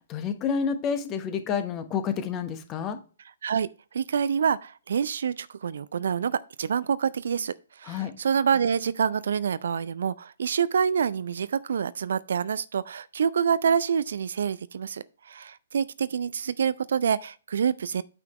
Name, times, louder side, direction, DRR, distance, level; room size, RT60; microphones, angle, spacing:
voice 1, 0.1-3.0 7.9-8.1, left 6 dB, 25° left, 1.1 m, -29 dB
voice 2, 3.9-18.0, right 7 dB, 60° right, 0.4 m, -27 dB
9.0 x 5.8 x 3.1 m
figure-of-eight pair, 120°, 0 cm